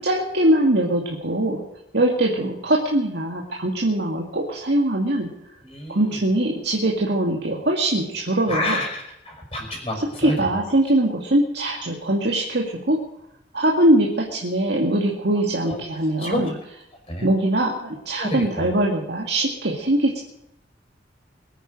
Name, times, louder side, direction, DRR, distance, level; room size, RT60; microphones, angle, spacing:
voice 1, 0.0-1.6 1.9-5.3 5.9-8.8 10.2-13.0 13.5-16.5 17.2-20.2, right 1 dB, 65° right, -1 dB, 2.2 m, -22 dB
voice 2, 5.6-6.0 8.5-10.3 15.7-15.8 16.2-16.5 17.1-17.3 18.2-18.7, left 1 dB, 30° left, 0 dB, 5.1 m, -28 dB
22.5 x 9.4 x 6.4 m, 0.81 s
head